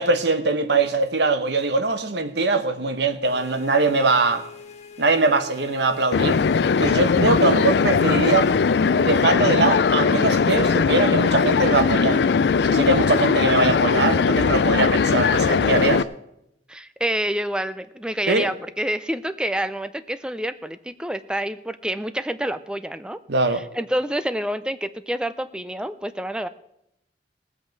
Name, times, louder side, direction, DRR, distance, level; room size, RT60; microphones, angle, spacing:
voice 1, 0.0-4.5 5.0-6.4 6.8-8.5 8.9-12.2 12.6-16.1 18.3-18.5 23.3-23.6, right 3 dB, 70° right, 1.0 m, -22 dB
sound 1, 3.2-9.4, left 5 dB, 40° left, 1.3 m, -43 dB
sound 2, 6.1-16.0, left 5 dB, 65° left, 0.4 m, -19 dB
voice 2, 16.7-23.2 23.5-26.5, right 1 dB, 5° right, 0.4 m, -28 dB
18.5 x 8.0 x 4.6 m
head